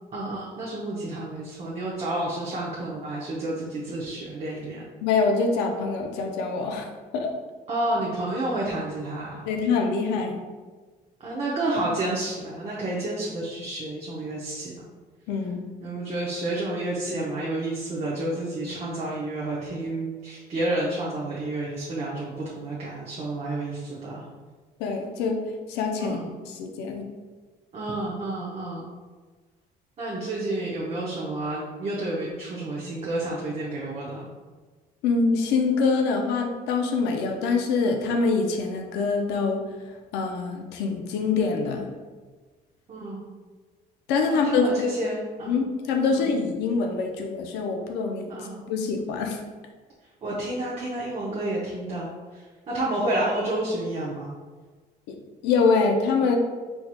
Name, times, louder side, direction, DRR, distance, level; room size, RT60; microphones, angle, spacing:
voice 1, 0.1-4.8 7.7-9.4 11.2-14.8 15.8-24.2 26.0-26.3 27.7-28.8 30.0-34.3 42.9-43.2 44.3-45.5 46.1-46.3 48.3-48.6 50.2-54.3, right 1 dB, 40° right, -5 dB, 0.7 m, -30 dB
voice 2, 5.0-7.3 9.5-10.4 15.3-15.6 24.8-25.4 25.7-26.2 26.5-27.0 35.0-39.6 40.1-41.9 44.1-44.7 45.5-48.3 48.7-49.4 55.1-55.2 55.4-56.4, left 4 dB, 90° left, 3 dB, 0.5 m, -25 dB
4.5 x 2.8 x 2.2 m, 1.4 s
cardioid pair, 110°, 17 cm